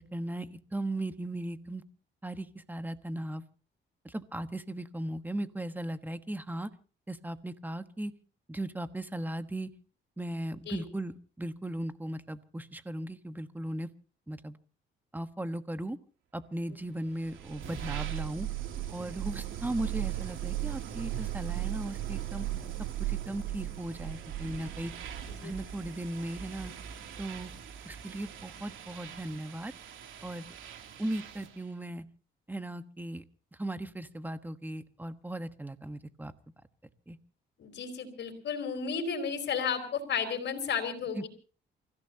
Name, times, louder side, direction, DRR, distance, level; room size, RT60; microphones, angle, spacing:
voice 1, 0.1-1.8 2.2-3.4 4.0-6.7 7.1-8.1 8.5-9.7 10.2-11.1 11.4-13.9 14.3-14.6 15.1-16.0 16.3-18.5 18.9-22.5 23.0-24.9 25.4-26.7 27.2-27.5 27.8-29.7 30.2-30.4 31.0-32.0 32.5-33.2 33.5-36.3 37.1-37.2 41.1-41.3, right 1 dB, 10° right, 10 dB, 1.3 m, -37 dB
sound 1, 17.0-31.6, right 12 dB, 80° right, 2.9 m, -38 dB
voice 2, 37.6-41.3, left 6 dB, 60° left, 6 dB, 4.9 m, -33 dB
29.0 x 16.0 x 2.9 m, 0.37 s
cardioid pair, 90°, 20 cm